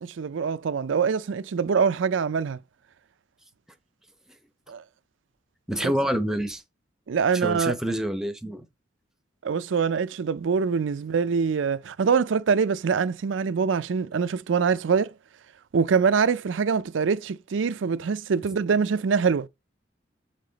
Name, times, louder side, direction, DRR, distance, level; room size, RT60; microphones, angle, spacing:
voice 1, 0.0-2.6 4.7-4.8 5.8-5.9 7.1-7.7 9.4-15.1 15.7-19.5, right 6 dB, 85° right, 0.4 m, -24 dB
voice 2, 5.7-6.6 7.3-8.7, equal, 5° right, 0.7 m, -27 dB
6.7 x 3.8 x 3.9 m
head